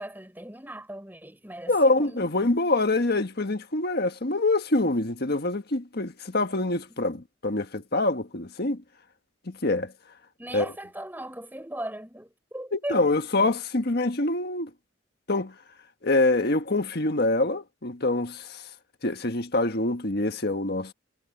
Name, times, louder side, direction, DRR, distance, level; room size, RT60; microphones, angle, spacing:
voice 1, 0.0-2.4 10.4-13.1, right 1 dB, 10° right, 5.7 m, -38 dB
voice 2, 1.7-8.8 9.4-9.9 10.5-10.6 12.7-14.7 15.3-15.5 16.0-18.7 19.0-20.9, left 2 dB, 55° left, 1.6 m, -25 dB
head